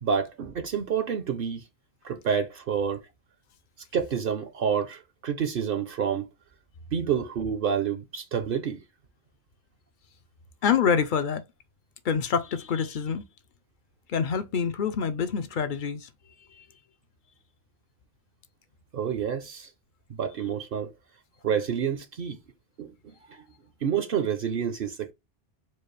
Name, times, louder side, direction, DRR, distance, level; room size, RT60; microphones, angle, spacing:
voice 1, 0.0-1.6 2.0-3.0 3.9-6.3 6.9-8.8 18.9-19.7 20.2-20.9 21.4-22.4 22.8-23.4 23.8-25.1, right 7 dB, 60° right, 0.8 m, -28 dB
voice 2, 10.6-11.4 12.0-13.2 14.1-16.1 16.6-16.7, left 7 dB, 60° left, 0.6 m, -26 dB
4.6 x 2.3 x 3.1 m
omnidirectional pair, 1.1 m